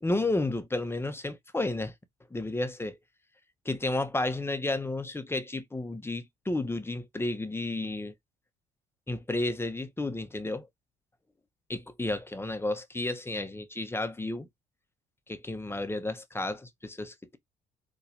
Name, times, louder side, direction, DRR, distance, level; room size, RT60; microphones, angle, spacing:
voice 1, 0.0-1.9 2.3-3.0 3.6-8.1 9.1-10.7 11.7-14.5 15.3-17.4, left 2 dB, 10° left, 0.9 m, -32 dB
4.1 x 3.1 x 2.6 m
hypercardioid pair, 60°, 20 cm